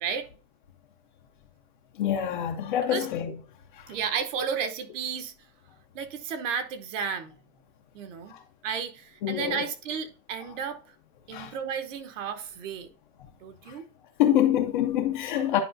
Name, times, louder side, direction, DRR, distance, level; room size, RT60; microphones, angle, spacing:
voice 1, 2.0-3.3 8.3-8.4 9.2-9.6 11.3-11.5 14.2-15.6, left 11 dB, 30° left, 0.5 m, -25 dB
voice 2, 3.9-5.3 5.9-7.4 7.9-8.4 8.6-10.8 11.3-12.9 13.4-13.9, right 7 dB, 50° right, 1.1 m, -33 dB
10.0 x 4.8 x 2.6 m
supercardioid pair, 170°, 50 cm